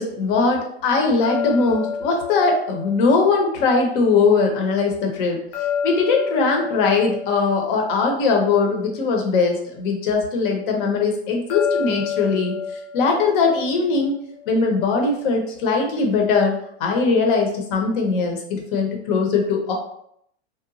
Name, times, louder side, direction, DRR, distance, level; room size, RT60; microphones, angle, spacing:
voice 1, 0.0-5.4 5.8-12.5 12.9-14.1 14.5-16.5 16.8-19.7, left 4 dB, 50° left, 2 dB, 0.8 m, -20 dB
sound 1, 1.2-4.3 5.5-9.0 11.5-14.6, left 6 dB, 85° left, 0.7 m, -30 dB
2.9 x 2.1 x 2.5 m, 0.71 s
supercardioid pair, 145°, 33 cm